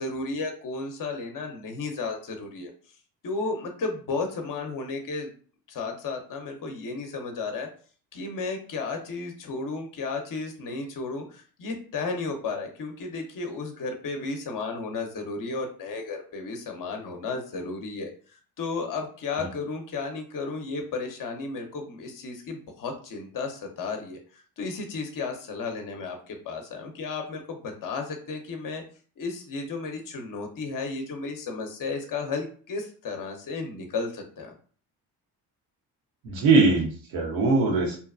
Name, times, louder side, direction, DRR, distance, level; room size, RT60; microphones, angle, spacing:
voice 1, 0.0-2.7 3.2-5.3 5.7-7.7 8.1-18.1 18.6-24.2 24.6-28.8 29.2-34.5, left 4 dB, 45° left, 4 dB, 0.8 m, -33 dB
voice 2, 36.2-38.0, right 3 dB, 85° right, -1 dB, 1.0 m, -21 dB
2.8 x 2.2 x 2.4 m, 0.42 s
supercardioid pair, 55°, 46 cm